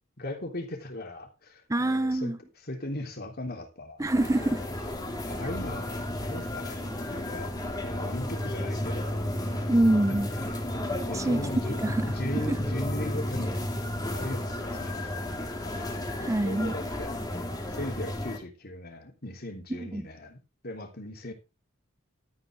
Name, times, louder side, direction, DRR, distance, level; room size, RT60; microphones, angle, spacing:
voice 1, 0.2-4.0 5.3-6.9 7.1-7.5 7.8-9.3 10.4-10.6 11.1-13.7 14.1-16.0 16.4-17.2 17.7-20.4 20.6-21.3, left 1 dB, 50° left, 3.5 m, -38 dB
voice 2, 1.7-2.4 4.0-4.6 9.7-10.3 11.1-11.4 11.8-12.1 12.5-12.6 16.2-16.7 19.8-20.0, right 1 dB, 15° right, 0.5 m, -25 dB
sound 1, 4.0-18.4, left 1 dB, 20° left, 2.6 m, -33 dB
13.0 x 9.8 x 3.6 m
head